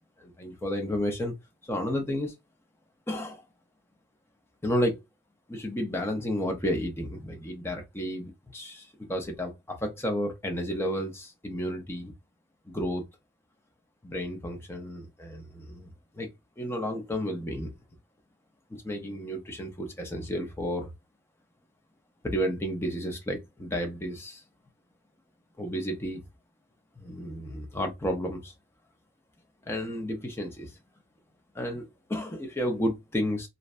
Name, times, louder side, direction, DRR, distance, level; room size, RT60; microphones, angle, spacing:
voice 1, 0.2-1.3 1.6-2.3 3.1-3.4 4.6-5.0 5.5-12.1 12.7-13.0 14.0-16.3 16.6-17.7 18.7-20.9 22.2-24.4 25.6-26.2 27.0-28.5 29.7-30.7 31.5-31.8 32.1-33.5, equal, 10° left, 0.5 m, -32 dB
2.6 x 2.1 x 2.4 m
head